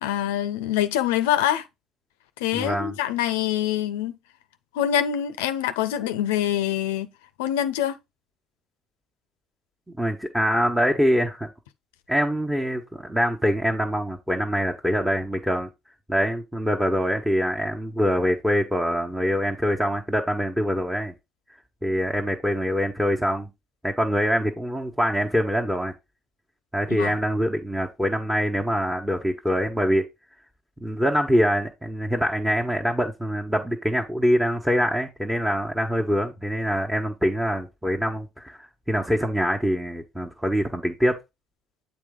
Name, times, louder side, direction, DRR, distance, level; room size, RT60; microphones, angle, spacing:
voice 1, 0.0-1.7 2.4-4.2 4.7-7.1 7.4-8.0 27.0-27.2, left 11 dB, 85° left, 0.5 m, -25 dB
voice 2, 2.5-3.0 10.0-11.5 12.1-15.7 16.1-21.1 21.8-23.5 23.8-25.9 26.7-30.1 30.8-41.2, equal, 5° right, 1.2 m, -24 dB
7.4 x 4.1 x 3.7 m
hypercardioid pair, 65°, 0 cm